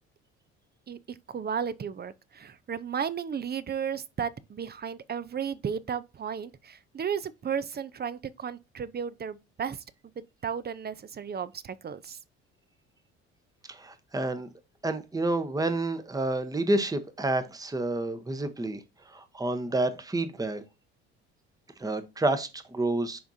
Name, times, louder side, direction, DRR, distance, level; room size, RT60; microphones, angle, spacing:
voice 1, 0.9-9.8 10.2-12.2, right 7 dB, 30° right, 0.6 m, -34 dB
voice 2, 13.7-14.5 14.8-18.8 19.1-20.6 21.8-23.2, right 2 dB, 10° right, 0.9 m, -29 dB
10.0 x 3.5 x 2.7 m
hypercardioid pair, 60°, 33 cm